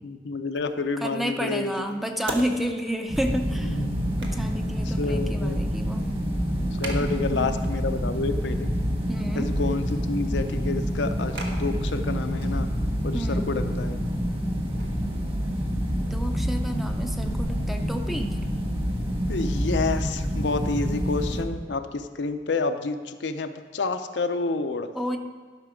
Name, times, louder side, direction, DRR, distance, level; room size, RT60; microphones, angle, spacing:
voice 1, 0.0-1.8 3.9-4.0 5.0-5.6 6.8-8.7 9.4-12.7 13.0-14.0 19.3-24.9, left 3 dB, 85° left, 8 dB, 0.6 m, -29 dB
sound 1, 0.6-18.2, right 2 dB, 90° right, 1.2 m, -45 dB
voice 2, 1.0-3.8 4.2-6.1 7.0-7.5 9.1-9.5 13.1-13.5 16.0-18.4 24.9-25.2, equal, ahead, 4 dB, 0.5 m, -31 dB
sound 2, 3.1-21.4, equal, 30° right, 1.5 m, -27 dB
12.0 x 5.7 x 5.0 m, 1.5 s
head